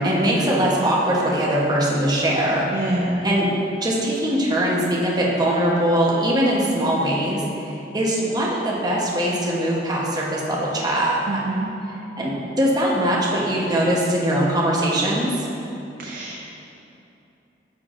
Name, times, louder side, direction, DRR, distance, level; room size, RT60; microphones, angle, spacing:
voice 1, 0.0-2.7 3.2-3.5 3.8-11.4 12.2-15.3, right 1 dB, 25° right, -5 dB, 0.9 m, -21 dB
voice 2, 2.7-3.2 11.3-11.7 16.0-16.4, right 1 dB, 50° right, -2 dB, 0.5 m, -26 dB
9.5 x 6.0 x 2.5 m, 2.8 s
head